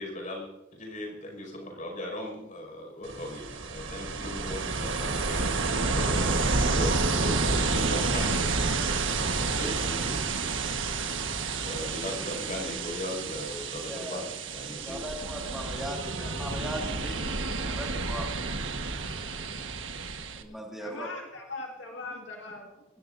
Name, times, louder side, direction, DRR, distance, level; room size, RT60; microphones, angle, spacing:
voice 1, 0.0-8.4 9.3-10.2 11.6-15.0, left 1 dB, 40° left, 1 dB, 5.7 m, -38 dB
Ocean, 3.0-20.4, right 3 dB, 75° right, 1.4 m, -30 dB
voice 2, 13.8-14.2 14.8-18.3 20.3-21.1, equal, ahead, -2 dB, 2.0 m, -39 dB
voice 3, 20.8-22.8, left 3 dB, 70° left, 1 dB, 2.0 m, -40 dB
24.5 x 17.5 x 2.7 m, 1.0 s
head